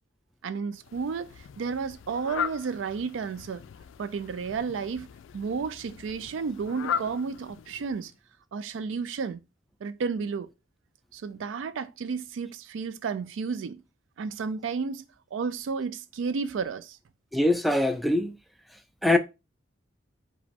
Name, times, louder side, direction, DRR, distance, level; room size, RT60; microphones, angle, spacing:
voice 1, 0.4-3.6 4.0-5.1 5.3-8.1 8.5-9.4 9.8-10.5 11.1-13.8 14.2-15.1 15.3-17.0, right 5 dB, 80° right, 0.4 m, -32 dB
Fowl, 0.8-8.2, left 8 dB, 80° left, 0.3 m, -38 dB
voice 2, 17.3-18.3 19.0-19.2, left 1 dB, ahead, 0.3 m, -23 dB
4.8 x 2.2 x 3.5 m
head